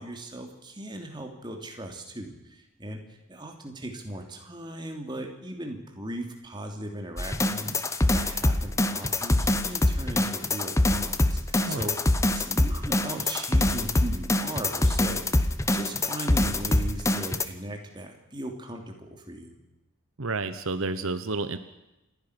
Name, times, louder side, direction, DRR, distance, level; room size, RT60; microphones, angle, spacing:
voice 1, 0.0-3.0 3.3-19.6, right 1 dB, 20° right, 3 dB, 3.0 m, -38 dB
sound 1, 7.2-17.4, left 1 dB, 15° left, 1.0 m, -24 dB
voice 2, 20.2-21.6, right 3 dB, 70° right, 11 dB, 1.1 m, -30 dB
28.0 x 11.5 x 9.9 m, 0.95 s
head